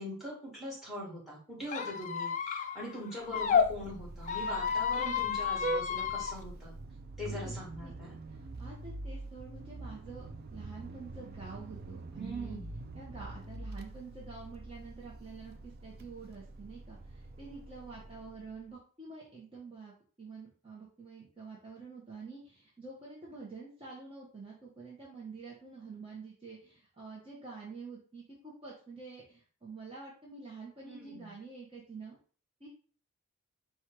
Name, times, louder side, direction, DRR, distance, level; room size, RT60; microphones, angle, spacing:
voice 1, 0.0-6.7 7.2-8.2 12.2-12.7 30.8-31.3, equal, ahead, -4 dB, 1.8 m, -42 dB
Squeak, 1.7-3.7 4.2-6.3, left 7 dB, 35° left, 0.4 m, -31 dB
Vehicle horn car horn honking, 3.2-18.6, right 2 dB, 45° right, 0.4 m, -44 dB
voice 2, 8.3-12.6 12.9-32.1 32.6-32.7, right 4 dB, 25° right, -5 dB, 0.9 m, -48 dB
4.3 x 2.4 x 4.7 m, 0.42 s
head